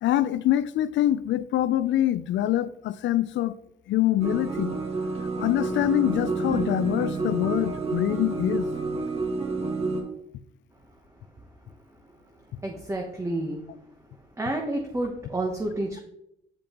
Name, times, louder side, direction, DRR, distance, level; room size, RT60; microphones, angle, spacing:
voice 1, 0.0-3.6 3.9-4.8 5.4-8.7, left 13 dB, 70° left, 0.4 m, -24 dB
sound 1, 4.2-10.0, right 3 dB, 30° right, 1.5 m, -29 dB
voice 2, 12.6-13.6 14.4-16.0, right 1 dB, 15° right, 0.9 m, -29 dB
8.7 x 5.0 x 2.9 m
cardioid pair, 90°, 20 cm